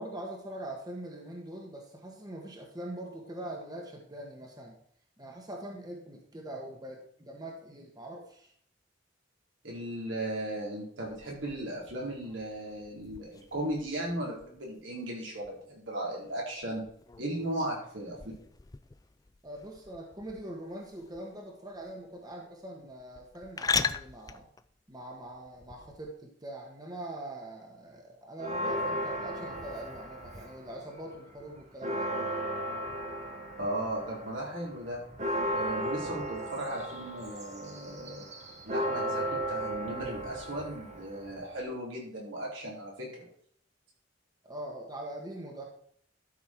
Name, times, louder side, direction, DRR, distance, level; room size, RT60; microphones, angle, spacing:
voice 1, 0.0-4.7 5.2-8.5 19.4-24.5 24.9-32.1 44.4-45.6, right 1 dB, 20° right, 0 dB, 1.6 m, -43 dB
voice 2, 9.6-16.8 17.2-18.2 33.6-35.0 35.5-38.2 38.6-43.3, right 1 dB, 80° right, -3 dB, 4.5 m, -36 dB
sound 1, 11.0-26.1, left 5 dB, 20° left, 0.4 m, -40 dB
Church bell, 28.4-30.8 31.1-31.2 31.6-41.6, equal, 35° right, 1.3 m, -35 dB
12.5 x 6.4 x 4.7 m, 0.64 s
head